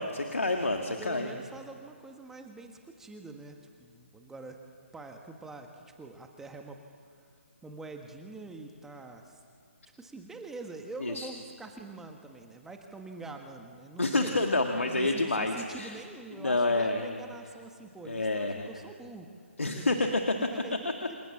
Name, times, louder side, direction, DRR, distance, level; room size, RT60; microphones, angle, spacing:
voice 1, 0.0-1.3 11.0-11.3 14.0-16.0 16.4-17.2 18.0-18.7 19.6-20.2, left 2 dB, 80° left, 4 dB, 2.1 m, -28 dB
voice 2, 0.8-4.6 4.9-6.8 7.6-9.4 10.0-14.4 14.9-19.3 19.6-20.0 20.5-20.7, right 3 dB, 5° right, 4 dB, 1.6 m, -45 dB
28.0 x 27.5 x 7.3 m, 2.3 s
figure-of-eight pair, 140°, 7 cm